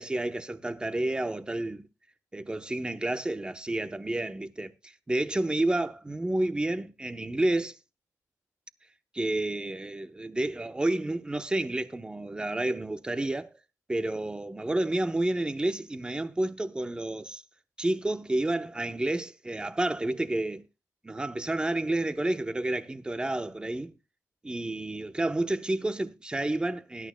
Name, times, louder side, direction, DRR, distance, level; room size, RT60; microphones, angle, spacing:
voice 1, 0.0-1.9 2.3-7.7 9.1-13.5 13.9-17.4 17.8-20.6 21.0-23.9 24.4-27.1, right 1 dB, 15° right, 0.9 m, -30 dB
20.0 x 11.5 x 2.2 m
wide cardioid pair, 125°, 6 cm